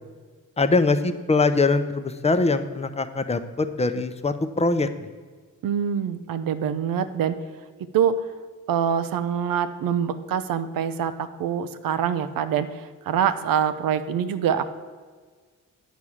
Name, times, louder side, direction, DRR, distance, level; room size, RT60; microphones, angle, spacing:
voice 1, 0.6-5.1, left 3 dB, 20° left, 10 dB, 0.6 m, -23 dB
voice 2, 5.6-7.3 7.9-8.2 8.7-14.6, right 8 dB, 90° right, 12 dB, 0.6 m, -25 dB
9.3 x 4.8 x 7.2 m, 1.5 s
cardioid pair, 75°, 33 cm